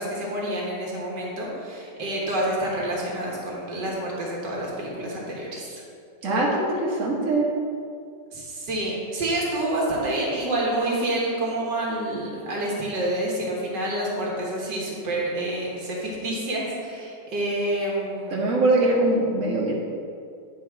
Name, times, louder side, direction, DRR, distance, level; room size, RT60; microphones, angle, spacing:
voice 1, 0.0-5.8 8.3-18.5, right 1 dB, 80° right, -4 dB, 2.0 m, -28 dB
voice 2, 6.2-7.5 18.3-19.7, right 2 dB, 50° right, -4 dB, 1.7 m, -22 dB
9.0 x 4.6 x 4.6 m, 2.4 s
omnidirectional pair, 1.9 m